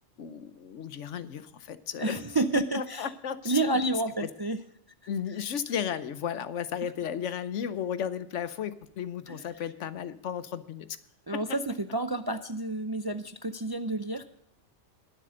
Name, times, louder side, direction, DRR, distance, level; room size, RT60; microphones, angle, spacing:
voice 1, 0.2-2.2 2.7-3.8 4.2-4.3 5.1-11.0, left 8 dB, 90° left, 13 dB, 1.1 m, -34 dB
voice 2, 2.0-3.1 3.5-4.6 9.3-9.4 11.3-14.2, right 2 dB, 35° right, 9 dB, 0.4 m, -29 dB
21.5 x 7.6 x 3.8 m, 0.73 s
omnidirectional pair, 1.2 m